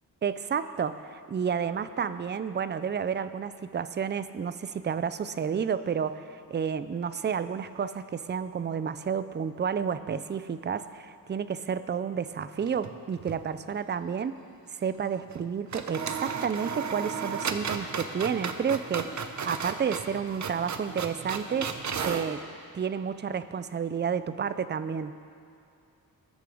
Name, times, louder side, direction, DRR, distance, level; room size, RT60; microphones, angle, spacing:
voice 1, 0.2-14.4 14.7-19.1 19.4-21.7 22.0-22.4 22.7-25.1, right 7 dB, 30° right, 13 dB, 0.4 m, -31 dB
sound 1, 12.6-13.4 13.7-13.8 15.3-15.4 15.7-22.3, right 5 dB, 50° right, 0.7 m, -34 dB
20.0 x 6.8 x 4.9 m, 2.6 s
wide cardioid pair, 150°, 36 cm